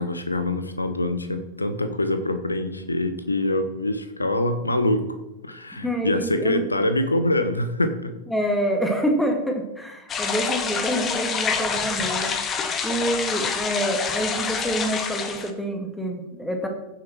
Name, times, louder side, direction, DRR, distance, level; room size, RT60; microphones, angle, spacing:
voice 1, 0.0-5.0 5.4-8.1, left 1 dB, 80° left, 10 dB, 1.1 m, -24 dB
voice 2, 5.7-6.7 8.3-12.3 12.8-16.7, right 1 dB, 5° left, 3 dB, 2.2 m, -27 dB
sound 1, 10.1-15.5, left 6 dB, 25° left, 1.3 m, -27 dB
15.0 x 7.4 x 4.5 m, 0.94 s
figure-of-eight pair, 90°, 0 cm